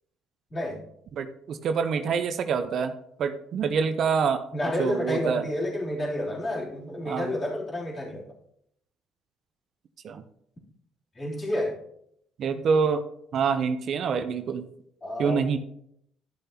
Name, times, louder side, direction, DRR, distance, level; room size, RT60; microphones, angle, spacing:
voice 1, 0.5-0.8 4.5-8.2 11.1-11.8 15.0-15.4, left 1 dB, 30° left, -6 dB, 3.2 m, -30 dB
voice 2, 1.2-2.9 3.2-4.4 4.8-5.5 7.1-7.3 10.0-10.2 12.4-13.0 13.3-14.7 15.2-15.6, right 6 dB, 60° right, 9 dB, 0.7 m, -26 dB
13.0 x 6.7 x 2.9 m, 0.73 s
hypercardioid pair, 60°, 0 cm